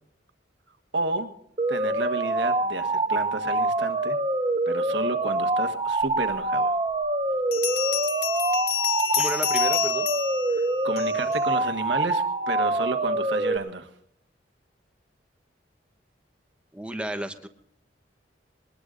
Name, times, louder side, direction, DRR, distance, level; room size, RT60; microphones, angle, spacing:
voice 1, 0.9-1.3 1.7-4.2 4.6-6.7 10.5-13.9, right 2 dB, 70° right, 8 dB, 1.5 m, -31 dB
sound 1, 1.6-13.6, right 2 dB, 25° right, 1.1 m, -25 dB
Bell, 6.3-6.4 7.5-11.4, left 11 dB, 55° left, 1.9 m, -29 dB
voice 2, 9.1-10.1 16.7-17.5, right 1 dB, 5° right, 7 dB, 1.1 m, -32 dB
22.0 x 20.0 x 2.6 m, 0.72 s
head